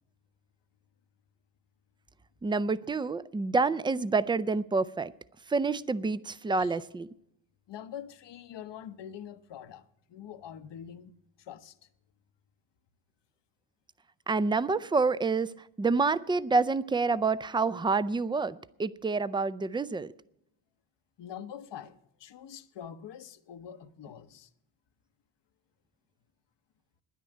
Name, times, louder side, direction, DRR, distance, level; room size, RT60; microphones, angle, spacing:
voice 1, 2.4-5.1 5.5-7.1 14.3-15.5 15.8-20.1, right 4 dB, 10° right, 0.4 m, -28 dB
voice 2, 7.7-11.8 21.2-24.5, left 9 dB, 60° left, 0.9 m, -45 dB
10.0 x 9.5 x 9.1 m
supercardioid pair, 50°, 47 cm